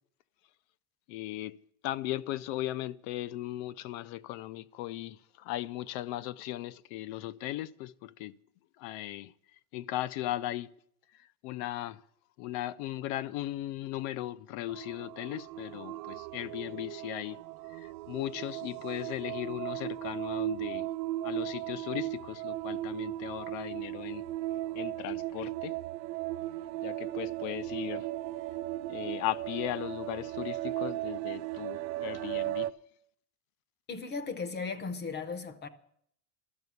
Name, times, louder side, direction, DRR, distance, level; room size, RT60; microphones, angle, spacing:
voice 1, 1.1-1.6 1.8-8.3 8.8-9.3 9.7-10.7 11.4-12.0 12.4-17.4 17.8-20.9 21.2-24.2 24.8-25.7 26.8-28.1 28.9-32.7, left 15 dB, 60° left, 0.6 m, -37 dB
sound 1, 14.7-32.7, right 16 dB, 85° right, 0.6 m, -37 dB
voice 2, 33.9-35.7, left 4 dB, 20° left, 0.7 m, -36 dB
12.5 x 6.7 x 9.4 m
supercardioid pair, 145°, 46 cm